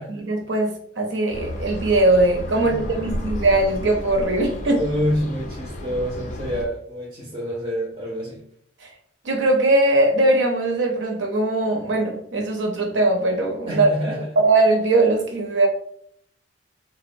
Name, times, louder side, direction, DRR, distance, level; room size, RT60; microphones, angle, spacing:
voice 1, 0.1-4.8 8.8-8.9 9.2-13.9 14.4-15.7, right 2 dB, 75° right, 2 dB, 0.6 m, -20 dB
sound 1, 1.3-6.6, left 1 dB, 40° left, 0.3 m, -32 dB
voice 2, 2.6-3.0 4.7-8.4 13.7-14.3, equal, 25° right, -3 dB, 0.4 m, -27 dB
3.3 x 2.0 x 2.5 m, 0.67 s
head